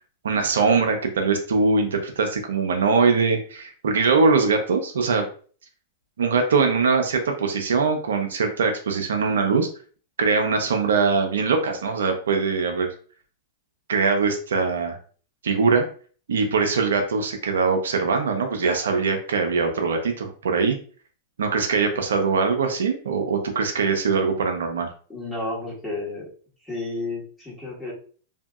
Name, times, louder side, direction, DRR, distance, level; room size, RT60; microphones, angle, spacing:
voice 1, 0.2-5.3 6.2-9.7 10.2-12.9 13.9-15.0 15.4-15.8 16.3-20.8 21.4-24.9, right 4 dB, 80° right, 4 dB, 0.5 m, -22 dB
voice 2, 25.1-26.3 26.6-27.9, left 2 dB, 10° left, -6 dB, 1.4 m, -31 dB
2.7 x 2.6 x 2.3 m, 0.43 s
hypercardioid pair, 110°, 0 cm